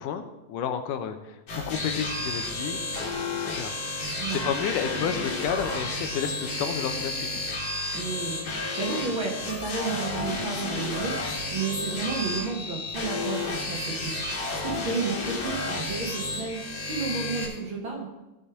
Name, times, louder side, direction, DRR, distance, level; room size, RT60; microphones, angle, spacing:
voice 1, 0.0-2.8 3.3-7.5, left 8 dB, 80° left, 8 dB, 2.3 m, -31 dB
sound 1, 1.5-17.5, left 2 dB, 50° left, 3.2 m, -31 dB
voice 2, 4.2-4.5 7.9-18.1, right 4 dB, 45° right, -2 dB, 2.0 m, -32 dB
16.0 x 5.5 x 4.9 m, 1.0 s
omnidirectional pair, 3.8 m